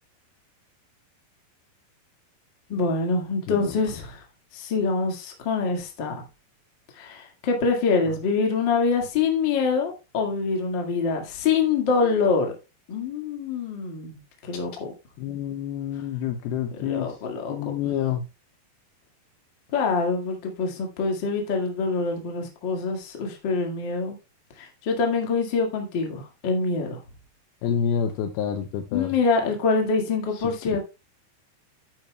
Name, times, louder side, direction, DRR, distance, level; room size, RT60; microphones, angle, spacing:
voice 1, 2.7-4.2 4.5-6.2 7.0-12.5 12.9-14.2 14.5-14.9 16.8-17.7 19.7-24.1 24.6-27.0 28.9-30.8, left 4 dB, 45° left, 2 dB, 1.6 m, -25 dB
voice 2, 3.5-3.8 8.1-8.2 15.2-17.2 17.5-18.2 27.6-29.1 30.3-30.8, left 8 dB, 80° left, 7 dB, 2.4 m, -28 dB
11.0 x 9.0 x 2.3 m, 0.27 s
omnidirectional pair, 4.9 m